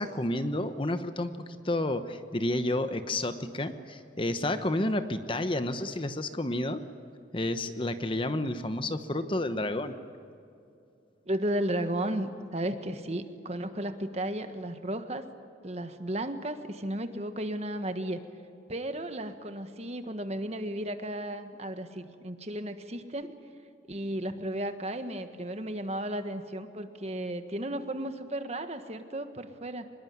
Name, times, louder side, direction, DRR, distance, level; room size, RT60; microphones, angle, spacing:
voice 1, 0.0-6.8 7.3-9.9, left 1 dB, 25° left, 10 dB, 1.0 m, -30 dB
voice 2, 11.3-15.2 15.6-18.2 18.7-23.3 23.9-29.9, right 1 dB, 35° right, 8 dB, 1.5 m, -34 dB
25.0 x 21.0 x 9.5 m, 2.6 s
head